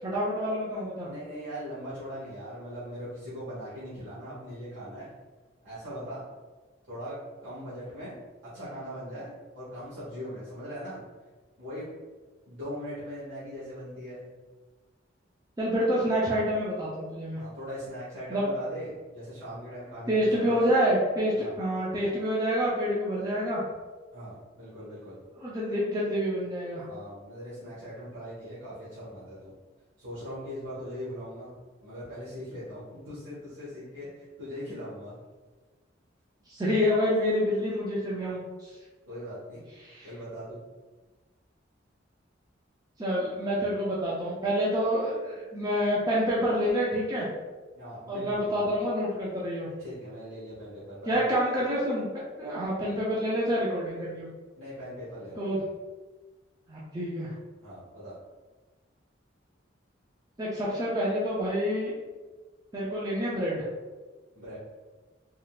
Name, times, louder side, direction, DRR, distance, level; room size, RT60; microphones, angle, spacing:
voice 1, 0.0-1.1 15.6-17.4 18.3-18.5 20.1-23.6 25.4-26.8 36.5-38.8 39.8-40.1 43.0-47.3 48.1-49.7 51.1-52.1 52.4-54.3 55.4-55.6 56.7-57.3 60.4-61.9 62.7-63.6, equal, 20° right, -7 dB, 0.5 m, -27 dB
voice 2, 1.1-5.1 5.6-6.2 6.9-8.2 8.5-11.0 11.6-11.9 12.5-14.3 17.4-20.6 21.4-21.5 24.1-25.2 26.9-29.5 30.0-31.5 31.8-35.1 37.3-37.4 39.1-39.6 40.0-40.6 47.7-48.7 49.8-51.2 54.6-55.6 57.6-58.1 64.3-64.6, equal, 75° right, -11 dB, 1.1 m, -40 dB
3.6 x 2.3 x 2.3 m, 1.3 s
head